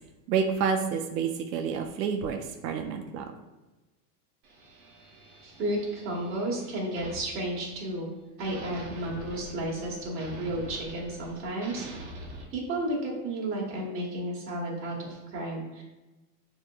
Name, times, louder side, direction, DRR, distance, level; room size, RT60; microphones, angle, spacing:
voice 1, 0.3-3.3, right 6 dB, 85° right, 5 dB, 0.6 m, -29 dB
sound 1, 4.4-8.1 8.4-12.4, right 1 dB, 40° right, 0.9 m, -45 dB
voice 2, 5.4-8.1 8.4-11.9 12.5-15.8, right 1 dB, 25° right, -5 dB, 1.3 m, -32 dB
6.1 x 2.9 x 2.3 m, 1.1 s
supercardioid pair, 145°, 49 cm